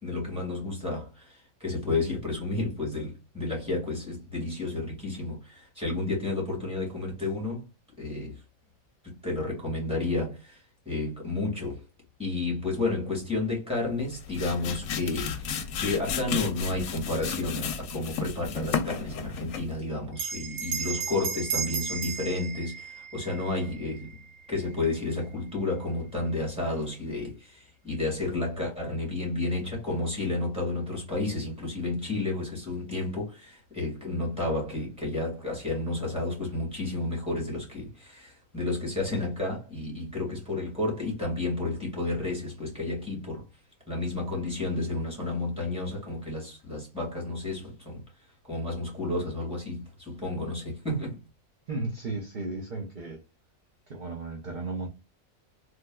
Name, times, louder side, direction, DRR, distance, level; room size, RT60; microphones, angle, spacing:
voice 1, 0.0-7.7 8.0-8.4 9.0-11.8 12.2-24.2 24.5-43.4 43.9-48.0 48.4-51.2, left 2 dB, 5° right, 1.8 m, -31 dB
sound 1, 14.0-19.8, left 6 dB, 65° left, 0.8 m, -33 dB
Bell, 20.1-25.0, right 6 dB, 90° right, 1.1 m, -35 dB
voice 2, 51.7-53.2 53.9-54.9, right 3 dB, 50° right, 0.6 m, -34 dB
3.3 x 2.6 x 2.2 m
omnidirectional pair, 1.5 m